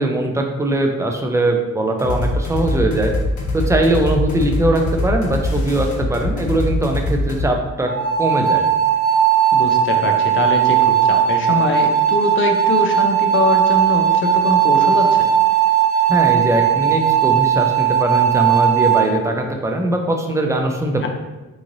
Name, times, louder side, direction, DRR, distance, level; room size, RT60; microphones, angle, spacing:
voice 1, 0.0-3.1 3.5-7.9 8.2-8.6 16.1-21.1, right 1 dB, 10° right, 2 dB, 0.4 m, -20 dB
sound 1, 2.0-7.5, left 2 dB, 85° left, 1.1 m, -22 dB
sound 2, 7.9-19.1, right 9 dB, 35° right, 1.0 m, -17 dB
voice 2, 9.5-15.3 21.0-21.1, left 3 dB, 45° left, 3 dB, 0.5 m, -23 dB
3.7 x 3.0 x 2.6 m, 1.1 s
cardioid pair, 110°, 29 cm